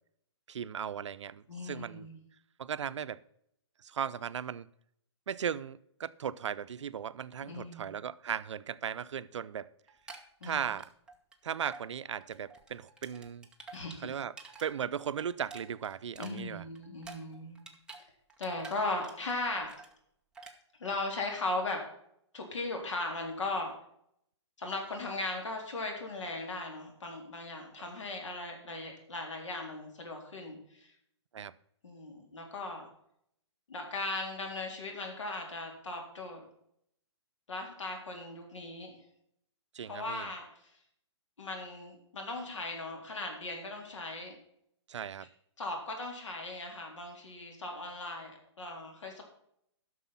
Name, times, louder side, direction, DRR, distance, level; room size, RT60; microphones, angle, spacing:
voice 1, 0.5-2.1 2.6-3.2 3.8-4.7 5.3-9.7 10.4-10.9 11.4-13.5 14.0-14.3 14.6-16.6 31.3-31.5 39.7-40.3 44.9-45.3, right 8 dB, 80° right, 0.6 m, -37 dB
voice 2, 1.5-2.2 7.4-7.9 10.4-10.6 13.7-14.1 16.2-17.6 18.4-19.8 20.8-21.8 22.3-23.7 24.6-30.9 31.8-32.8 33.7-36.4 37.5-38.9 39.8-40.7 41.4-44.4 45.6-49.2, left 2 dB, 90° left, 3.8 m, -38 dB
sound 1, 9.9-11.3 11.7-11.9 12.2-14.7 15.0-18.0 18.3-19.3 19.6-19.9 20.3-20.6, right 3 dB, 5° right, 1.0 m, -49 dB
11.5 x 6.3 x 5.8 m
hypercardioid pair, 150°, 15 cm